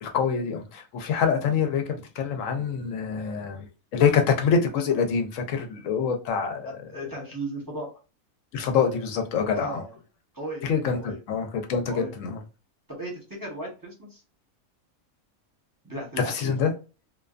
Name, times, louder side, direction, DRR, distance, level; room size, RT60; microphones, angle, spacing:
voice 1, 0.0-3.7 3.9-6.7 8.5-9.8 10.6-12.4 16.3-16.7, left 6 dB, 70° left, 0.9 m, -25 dB
voice 2, 6.9-7.9 9.5-9.9 10.3-10.7 10.9-11.2 11.9-12.1 13.0-14.2 15.8-16.5, right 1 dB, 20° right, 0.8 m, -36 dB
2.5 x 2.2 x 2.4 m
omnidirectional pair, 1.5 m